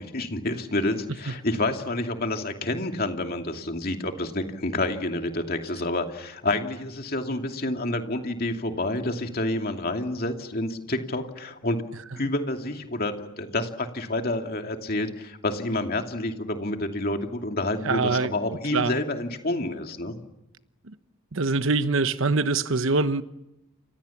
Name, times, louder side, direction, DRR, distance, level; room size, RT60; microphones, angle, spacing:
voice 1, 0.0-11.8 12.2-20.2, left 2 dB, 45° left, 2.6 m, -29 dB
voice 2, 17.8-18.3 18.7-18.9 20.9-21.0 21.3-23.2, right 3 dB, 65° right, 1.0 m, -24 dB
29.5 x 26.0 x 7.3 m
head